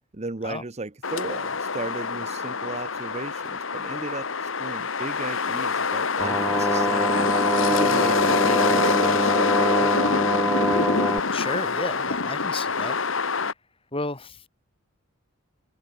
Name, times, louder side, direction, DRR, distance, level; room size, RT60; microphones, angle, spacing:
voice 1, 0.1-7.3 7.7-10.2, right 2 dB, 30° right, 0.9 m, -36 dB
sound 1, 1.0-13.5, left 4 dB, 65° left, 1.5 m, -25 dB
sound 2, 6.2-11.2, right 1 dB, 5° right, 0.3 m, -25 dB
voice 2, 11.3-13.0 13.9-14.5, left 2 dB, 25° left, 3.6 m, -32 dB
head